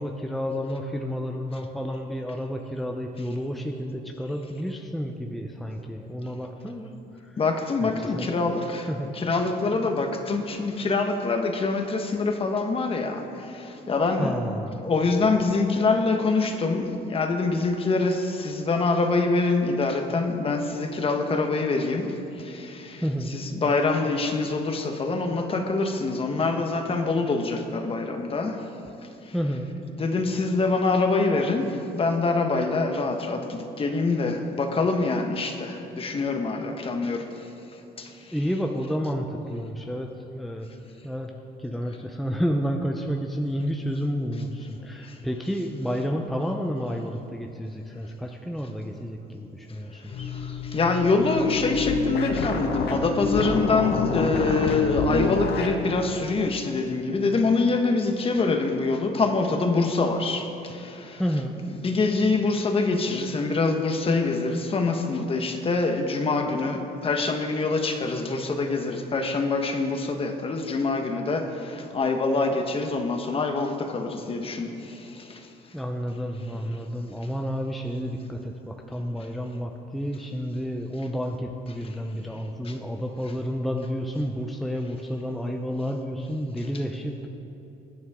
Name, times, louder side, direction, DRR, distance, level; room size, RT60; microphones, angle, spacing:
voice 1, 0.0-6.9 7.8-8.3 8.9-9.1 14.1-14.8 23.0-23.4 29.3-29.7 38.3-40.1 40.3-40.7 41.0-41.3 41.6-50.3 61.2-61.6 75.7-87.3, equal, ahead, 2 dB, 0.7 m, -30 dB
voice 2, 7.4-8.9 9.1-13.2 13.9-14.4 14.8-22.1 22.5-28.6 30.0-31.6 31.9-37.2 50.7-60.5 60.7-61.1 61.8-74.7, left 3 dB, 35° left, 5 dB, 1.3 m, -25 dB
sound 1, 50.1-55.8, left 3 dB, 70° left, 1.4 m, -27 dB
21.0 x 9.4 x 3.7 m, 2.9 s
cardioid pair, 110°, 17 cm